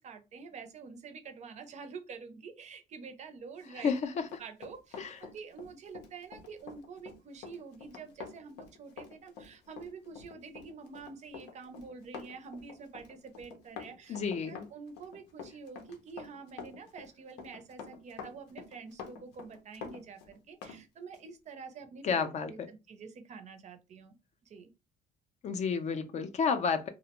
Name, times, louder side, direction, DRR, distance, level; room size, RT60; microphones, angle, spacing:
voice 1, 0.0-3.9 4.4-14.2 14.4-22.0 22.4-24.2 24.4-24.7, right 5 dB, 45° right, 0.5 m, -47 dB
Run, 3.8-20.8 21.1-21.3, left 6 dB, 90° left, 0.6 m, -48 dB
voice 2, 3.8-4.3 5.0-5.2 14.1-14.7 22.0-22.5 25.4-26.9, left 5 dB, 45° left, 0.4 m, -31 dB
2.4 x 2.0 x 2.8 m
cardioid pair, 110°, 17 cm